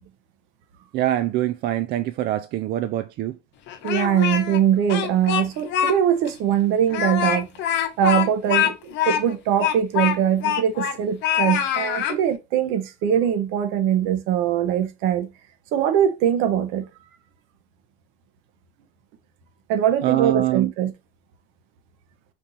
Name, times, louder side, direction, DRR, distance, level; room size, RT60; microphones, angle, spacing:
voice 1, 0.9-3.4 20.0-20.7, right 14 dB, 50° right, 0.4 m, -24 dB
Speech, 3.7-4.6 4.9-5.9 6.3-6.4 6.9-11.0 11.2-12.2, left 10 dB, 60° left, 0.8 m, -24 dB
voice 2, 3.8-7.5 8.0-8.7 9.0-15.3 15.7-16.8 19.7-20.9, right 9 dB, 70° right, 1.0 m, -22 dB
4.5 x 2.7 x 3.9 m
supercardioid pair, 115°, 21 cm